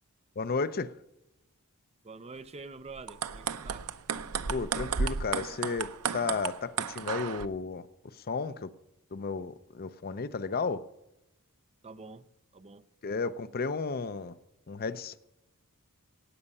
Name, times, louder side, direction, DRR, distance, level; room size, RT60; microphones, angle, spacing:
voice 1, 0.4-0.9 4.5-7.9 8.2-8.7 9.1-10.8 13.0-14.3 14.7-15.2, left 4 dB, 45° left, 0.6 m, -33 dB
voice 2, 2.0-3.9 11.8-12.3 12.5-12.9, right 3 dB, 30° right, 0.6 m, -46 dB
sound 1, 3.0-7.5, right 6 dB, 75° right, 0.6 m, -33 dB
17.0 x 8.7 x 5.4 m
head